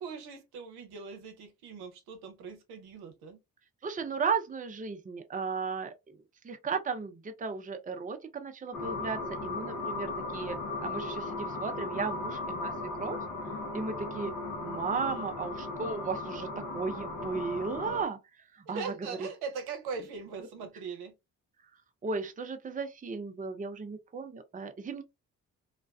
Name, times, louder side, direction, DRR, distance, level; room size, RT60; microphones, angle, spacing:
voice 1, 0.0-3.4 14.9-15.3 18.7-21.1, right 5 dB, 75° right, 0.7 m, -41 dB
voice 2, 3.8-13.2 13.7-14.3 14.6-18.2 18.5-19.3 22.0-25.0, right 5 dB, 20° right, 0.5 m, -35 dB
sound 1, 8.7-18.0, left 2 dB, 50° left, 0.8 m, -37 dB
2.4 x 2.2 x 2.3 m
hypercardioid pair, 45°, 40 cm